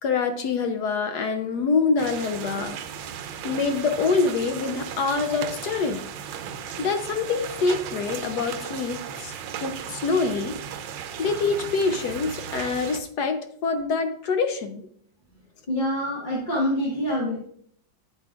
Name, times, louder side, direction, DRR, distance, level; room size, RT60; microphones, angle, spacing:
voice 1, 0.0-2.8 3.2-6.0 6.8-9.3 9.6-10.6 11.2-14.8, left 4 dB, 70° left, 8 dB, 1.1 m, -25 dB
sound 1, 2.0-13.0, right 8 dB, 75° right, 1.3 m, -36 dB
voice 2, 15.7-17.3, left 1 dB, 25° left, -5 dB, 1.5 m, -25 dB
9.5 x 8.3 x 2.4 m, 0.65 s
omnidirectional pair, 2.1 m